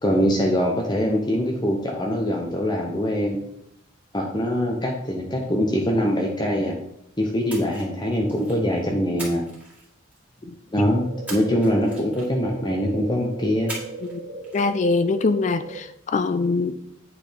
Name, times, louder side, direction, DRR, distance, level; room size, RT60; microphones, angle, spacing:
voice 1, 0.0-3.4 4.1-6.8 7.2-9.4 10.7-13.7, equal, 20° left, 0 dB, 0.8 m, -23 dB
Splash splatter, 7.5-8.7 9.2-10.4 11.3-12.5 13.7-14.2 14.4-14.7, right 2 dB, 10° right, 2.0 m, -39 dB
sound 1, 10.8-15.8, right 3 dB, 55° right, 1.3 m, -37 dB
voice 2, 14.5-16.9, left 3 dB, 35° left, 11 dB, 0.3 m, -23 dB
8.5 x 4.1 x 5.1 m, 0.77 s
head